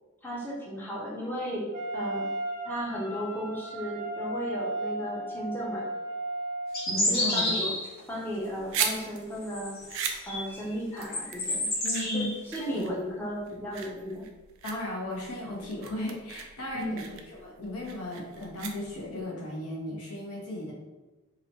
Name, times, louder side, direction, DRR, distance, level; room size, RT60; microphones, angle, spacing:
voice 1, 0.2-1.7 1.9-2.3 2.6-5.8 7.1-7.7 8.1-9.7 10.3-11.7 12.1-14.2 16.7-17.0, equal, 10° left, -6 dB, 0.5 m, -35 dB
Wind instrument woodwind instrument, 1.7-7.0, right 1 dB, 85° right, 0.6 m, -35 dB
sound 1, 6.7-8.0 9.4-10.5 10.9-12.4, left 1 dB, 45° left, 0.9 m, -29 dB
voice 2, 6.9-7.7 11.8-12.3 12.6-12.9 14.6-20.7, left 1 dB, 85° left, -2 dB, 0.7 m, -36 dB
sound 2, 8.3-19.2, right 7 dB, 60° right, 0.3 m, -38 dB
2.9 x 2.0 x 2.8 m, 1.1 s
head